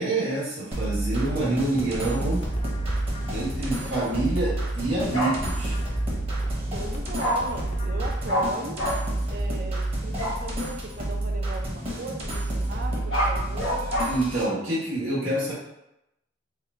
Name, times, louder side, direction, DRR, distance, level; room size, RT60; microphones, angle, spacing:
voice 1, 0.0-2.5 3.3-5.8 14.1-15.5, right 2 dB, 80° right, -11 dB, 1.2 m, -27 dB
sound 1, 0.7-14.4, right 1 dB, 30° right, 1.0 m, -30 dB
voice 2, 1.3-2.2 3.6-4.2 6.5-8.9 9.3-14.1, right 3 dB, 50° right, 3 dB, 0.5 m, -37 dB
sound 2, 1.7-8.1, left 1 dB, 35° left, 0.6 m, -38 dB
Bark, 5.1-5.3 7.2-7.3 8.3-8.4 8.8-8.9 10.2-10.4 12.9-14.0, equal, 80° left, 1.2 m, -26 dB
3.5 x 2.3 x 4.2 m, 0.87 s
head